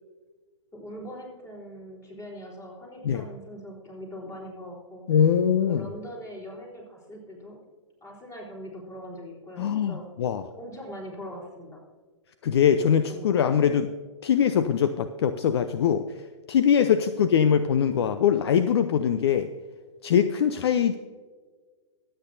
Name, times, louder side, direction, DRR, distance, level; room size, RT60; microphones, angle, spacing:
voice 1, 0.7-5.0 5.7-7.6 8.0-10.1 10.6-11.8 13.1-13.3 17.0-17.1, equal, 20° left, -2 dB, 4.1 m, -41 dB
voice 2, 5.1-5.9 9.6-10.4 12.4-13.9 14.2-16.1 16.5-19.5 20.0-20.9, left 8 dB, 55° left, 11 dB, 0.6 m, -22 dB
22.5 x 8.9 x 2.7 m, 1.5 s
figure-of-eight pair, 115°, 16 cm